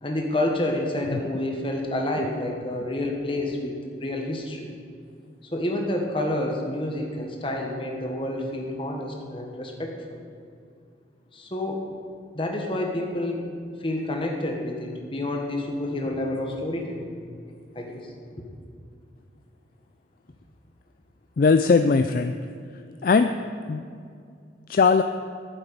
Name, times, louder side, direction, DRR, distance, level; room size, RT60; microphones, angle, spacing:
voice 1, 0.0-3.7 4.0-4.7 5.4-10.2 11.3-11.9 12.3-13.4 13.8-17.1 17.7-18.1, left 1 dB, 30° left, 1 dB, 1.4 m, -29 dB
voice 2, 21.4-22.3 23.0-23.3 23.7-23.8 24.7-25.0, left 4 dB, 50° left, 8 dB, 0.3 m, -19 dB
9.1 x 7.4 x 8.5 m, 2.3 s
head